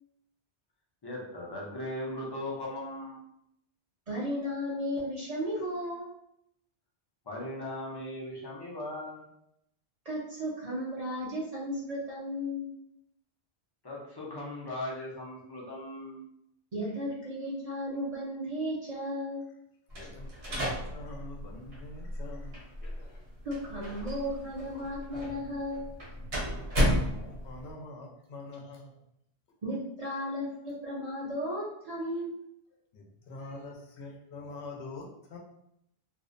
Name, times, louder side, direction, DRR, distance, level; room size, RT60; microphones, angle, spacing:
voice 1, 1.0-3.2 7.3-9.2 13.8-16.3, left 1 dB, 35° left, -4 dB, 0.4 m, -38 dB
voice 2, 4.1-6.0 10.0-12.7 16.7-19.4 23.4-25.9 29.6-32.3, equal, 45° right, -6 dB, 0.6 m, -34 dB
voice 3, 19.9-23.3 24.0-24.1 24.7-24.8 26.6-29.0 30.0-30.1 32.1-32.2 32.9-35.4, left 2 dB, 80° left, 0 dB, 0.9 m, -45 dB
sound 1, 19.9-27.7, equal, 65° right, 1.0 m, -33 dB
2.5 x 2.0 x 2.5 m, 0.76 s
omnidirectional pair, 1.1 m